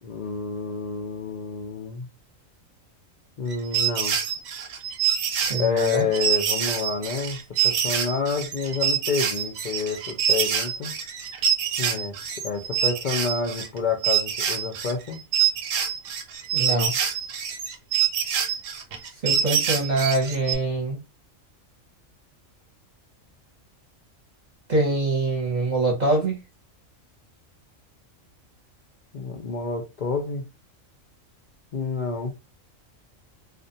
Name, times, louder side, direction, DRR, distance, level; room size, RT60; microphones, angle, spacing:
voice 1, 0.0-2.1 3.4-4.2 5.6-10.9 11.8-12.1 12.4-15.2 29.1-30.4 31.7-32.3, left 5 dB, 60° left, 0.5 m, -28 dB
sound 1, 3.5-13.8 14.0-20.6, right 8 dB, 75° right, 0.9 m, -26 dB
voice 2, 5.5-6.0 16.5-16.9 19.2-21.0 24.7-26.4, right 2 dB, 40° right, 0.8 m, -24 dB
2.5 x 2.2 x 2.6 m
omnidirectional pair, 1.4 m